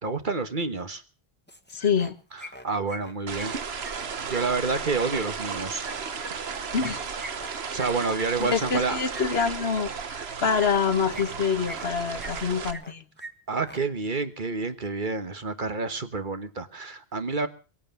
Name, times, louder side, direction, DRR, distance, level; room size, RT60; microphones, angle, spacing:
voice 1, 0.0-1.0 2.6-3.5 4.2-5.9 7.7-9.0 13.5-17.5, right 4 dB, 50° right, 1.5 m, -29 dB
sound 1, 1.5-2.1 2.4-4.4 5.8-9.2 10.5-10.8 11.1-11.9 12.2-12.9 13.2-13.3 13.6-13.8, right 1 dB, 10° left, 1.5 m, -42 dB
voice 2, 1.7-2.2 6.7-7.0 8.4-13.0, left 6 dB, 75° left, 1.6 m, -26 dB
sound 2, 3.3-12.7, right 6 dB, 70° right, 1.4 m, -34 dB
23.0 x 8.6 x 7.0 m
omnidirectional pair, 1.1 m